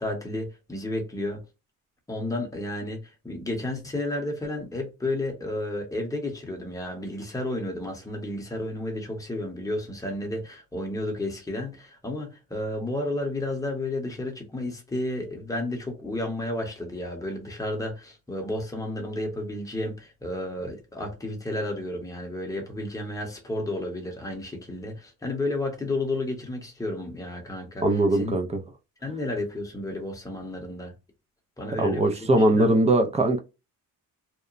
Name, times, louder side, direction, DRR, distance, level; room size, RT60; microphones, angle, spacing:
voice 1, 0.0-1.4 2.1-27.9 28.1-28.4 29.0-30.9 31.6-32.9, left 1 dB, 10° left, 0.7 m, -32 dB
voice 2, 27.8-28.6 31.8-33.4, right 1 dB, 20° right, 0.3 m, -21 dB
2.9 x 2.1 x 2.4 m
cardioid pair, 140°, 35 cm